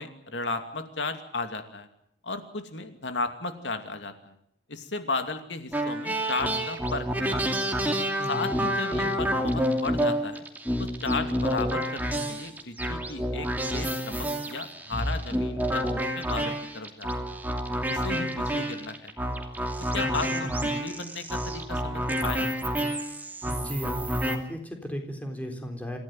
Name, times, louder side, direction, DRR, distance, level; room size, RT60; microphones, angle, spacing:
voice 1, 0.0-1.9 2.2-4.3 4.7-7.6 8.3-10.4 10.8-17.1 17.9-19.1 19.9-22.5, left 3 dB, 85° left, 7 dB, 2.7 m, -34 dB
sound 1, 5.7-24.4, equal, 10° right, 2.8 m, -29 dB
voice 2, 8.2-8.6 20.0-20.5 23.4-26.0, equal, 10° left, 4 dB, 3.9 m, -36 dB
27.0 x 16.0 x 9.5 m, 0.71 s
head